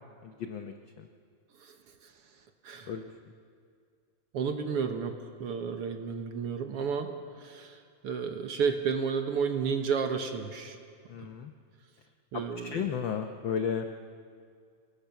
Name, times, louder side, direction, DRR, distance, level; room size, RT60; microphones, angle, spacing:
voice 1, 0.2-1.1 2.9-3.0 11.1-11.5 12.6-13.9, left 7 dB, 75° left, 6 dB, 1.1 m, -33 dB
voice 2, 2.6-3.0 4.3-7.1 7.4-10.8 11.2-11.3 12.3-12.9, right 6 dB, 60° right, 6 dB, 1.9 m, -32 dB
27.5 x 20.5 x 5.9 m, 2.2 s
omnidirectional pair, 3.3 m